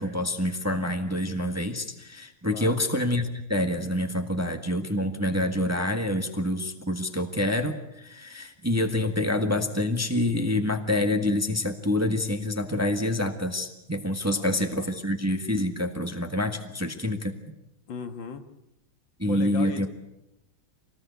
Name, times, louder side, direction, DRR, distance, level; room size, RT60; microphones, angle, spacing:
voice 1, 0.0-17.3 19.2-19.9, left 1 dB, 10° right, 6 dB, 1.4 m, -27 dB
voice 2, 2.5-2.8 14.3-14.9 17.9-18.5 19.3-19.9, left 5 dB, 75° left, 7 dB, 2.3 m, -37 dB
25.0 x 19.0 x 8.2 m, 0.87 s
omnidirectional pair, 2.1 m